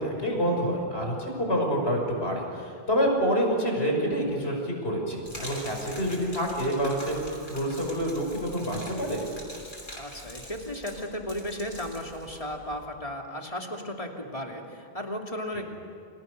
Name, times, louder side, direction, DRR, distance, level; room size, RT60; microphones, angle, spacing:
voice 1, 0.0-9.2, equal, 85° left, 1 dB, 6.3 m, -27 dB
Gurgling / Liquid, 5.2-12.9, equal, 55° left, 7.3 m, -44 dB
voice 2, 10.0-15.7, left 1 dB, 35° left, 1 dB, 3.1 m, -35 dB
30.0 x 26.5 x 6.7 m, 2.5 s
omnidirectional pair, 1.0 m